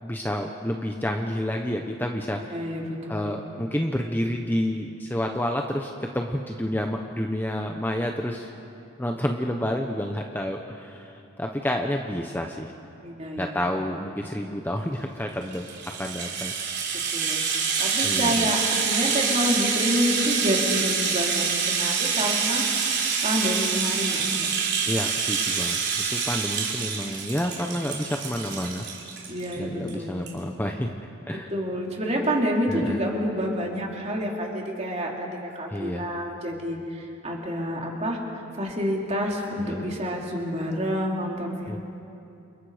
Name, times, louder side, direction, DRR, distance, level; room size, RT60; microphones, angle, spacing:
voice 1, 0.0-2.6 3.1-8.5 9.0-12.7 13.4-15.7 16.0-16.5 18.0-18.5 24.8-25.8 26.1-28.9 29.6-31.5 32.7-33.0 35.7-36.1 39.6-39.9 41.7-41.8, equal, 10° left, 2 dB, 0.9 m, -29 dB
voice 2, 2.4-3.4 13.0-13.6 16.9-17.4 17.8-22.6 23.2-24.5 29.3-30.3 31.3-41.8, equal, 30° right, -1 dB, 3.4 m, -28 dB
Rattle (instrument), 15.4-29.5 29.9-30.0 30.3-30.4, right 6 dB, 50° right, 3.9 m, -26 dB
29.0 x 29.0 x 5.0 m, 2.8 s
head